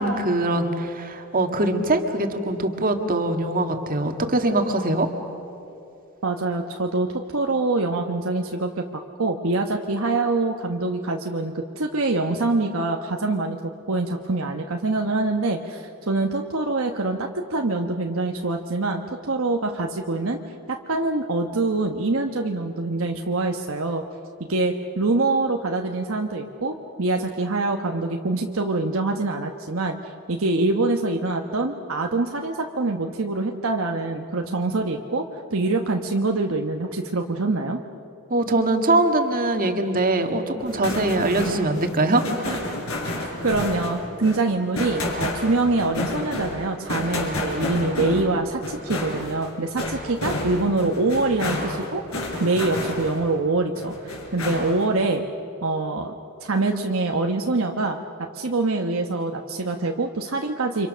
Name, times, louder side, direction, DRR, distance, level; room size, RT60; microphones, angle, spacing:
voice 1, 0.0-5.1 38.3-42.7, right 2 dB, 40° right, 5 dB, 1.9 m, -22 dB
voice 2, 6.2-13.6 13.9-20.4 20.7-24.0 24.5-30.0 30.3-37.8 43.4-52.0 52.4-55.2 55.6-56.1 56.4-58.0 58.3-60.9, right 2 dB, 65° right, 3 dB, 1.2 m, -25 dB
sound 1, 40.6-53.4 53.7-54.9, left 1 dB, 75° left, 5.9 m, -30 dB
30.0 x 26.0 x 6.4 m, 2.8 s
head